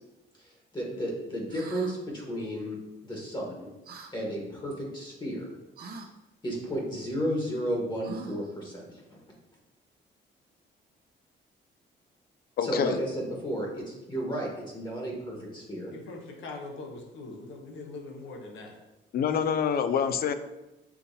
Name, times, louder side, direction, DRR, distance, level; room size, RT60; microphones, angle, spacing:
voice 1, 0.4-2.8 3.0-3.7 4.1-5.5 6.4-9.0 12.6-15.9, equal, 20° left, -2 dB, 1.3 m, -33 dB
sound 1, 1.5-1.9 3.9-4.1 5.8-6.1 8.0-8.5, right 3 dB, 50° right, 0.7 m, -42 dB
voice 2, 12.6-13.0 19.1-20.3, left 7 dB, 50° left, 11 dB, 0.4 m, -26 dB
voice 3, 15.9-18.8, left 3 dB, 75° left, 2 dB, 0.9 m, -42 dB
7.0 x 2.6 x 2.7 m, 0.99 s
cardioid pair, 90°, 20 cm